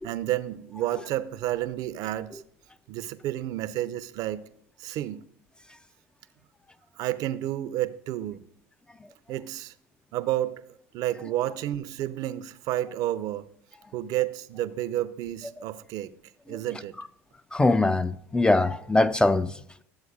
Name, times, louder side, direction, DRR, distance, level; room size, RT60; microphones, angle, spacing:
voice 1, 0.0-2.4 2.9-4.4 4.8-5.2 7.0-8.4 9.3-9.7 10.1-10.5 10.9-13.5 13.9-16.1 16.5-16.9, right 13 dB, 55° right, 0.5 m, -30 dB
voice 2, 17.5-19.8, left 2 dB, 10° left, 0.3 m, -23 dB
13.0 x 7.7 x 2.4 m
hypercardioid pair, 80°, 7 cm